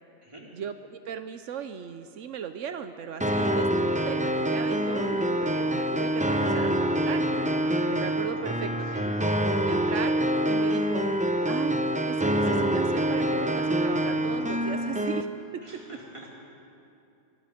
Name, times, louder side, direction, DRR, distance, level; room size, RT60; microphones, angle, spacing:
voice 1, 0.5-7.2 7.9-9.1 9.6-10.2 10.5-11.0 11.5-11.8 12.1-15.3 15.5-15.6, right 8 dB, 85° right, 9 dB, 1.1 m, -37 dB
sound 1, 3.2-15.2, right 1 dB, 5° right, 0.7 m, -26 dB
voice 2, 8.1-8.8 15.6-16.3, right 1 dB, 25° right, -4 dB, 4.4 m, -46 dB
25.5 x 24.0 x 5.1 m, 2.7 s
omnidirectional pair, 1.2 m